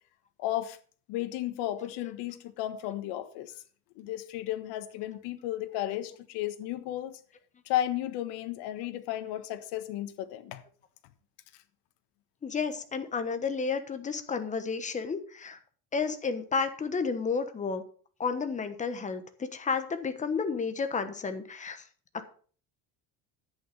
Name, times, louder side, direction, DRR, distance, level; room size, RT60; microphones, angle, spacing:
voice 1, 0.4-0.8 1.1-3.5 3.9-7.2 7.6-10.6, left 13 dB, 80° left, 1.4 m, -34 dB
voice 2, 12.4-15.6 15.9-17.8 18.2-21.9, left 5 dB, 20° left, 1.2 m, -31 dB
10.5 x 8.7 x 5.4 m
cardioid pair, 160°, 40 cm